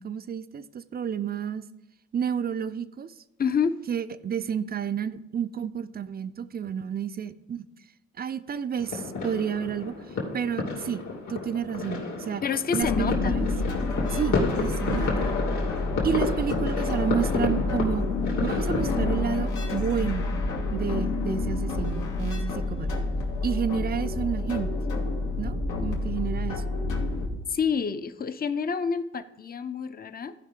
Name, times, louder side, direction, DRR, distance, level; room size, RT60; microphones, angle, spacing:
voice 1, 0.0-1.6 2.1-3.1 3.9-7.7 8.2-9.9 10.3-12.4 12.7-13.5 14.1-15.3 16.0-18.1 18.4-20.3 20.7-22.9 23.4-24.8 25.4-26.6, right 8 dB, 30° right, 13 dB, 0.5 m, -30 dB
voice 2, 3.4-3.8 12.4-13.4 13.8-14.0 27.5-30.3, left 6 dB, 30° left, 11 dB, 0.6 m, -28 dB
sound 1, 8.8-19.2, left 3 dB, 70° left, 2.5 m, -31 dB
sound 2, 12.8-27.3, left 3 dB, 90° left, 1.9 m, -28 dB
14.5 x 5.1 x 3.7 m, 0.95 s
cardioid pair, 90°, 30 cm